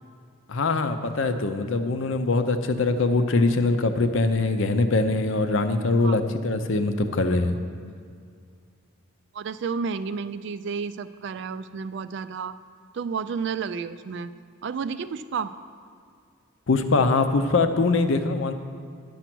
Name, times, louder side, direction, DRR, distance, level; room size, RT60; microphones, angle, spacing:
voice 1, 0.5-7.6 16.7-18.5, left 3 dB, 65° left, 8 dB, 0.6 m, -23 dB
voice 2, 9.3-12.6 12.9-14.3 14.6-15.5, right 5 dB, 55° right, 13 dB, 0.3 m, -31 dB
10.0 x 6.8 x 6.0 m, 2.1 s
head